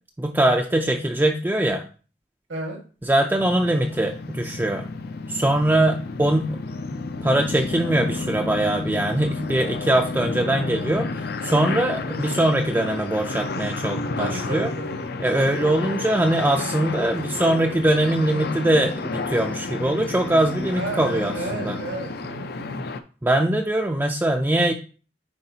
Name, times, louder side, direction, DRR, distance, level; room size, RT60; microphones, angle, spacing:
voice 1, 0.2-1.8 3.0-4.9 5.3-6.6 7.2-14.7 15.2-21.8 23.2-24.7, right 1 dB, 10° right, 3 dB, 0.4 m, -22 dB
sound 1, 3.4-23.0, left 3 dB, 55° left, 0.5 m, -31 dB
voice 2, 14.2-15.0 15.4-15.6 20.7-22.8, right 2 dB, 90° right, 1 dB, 1.8 m, -33 dB
9.6 x 3.9 x 2.8 m, 0.38 s
head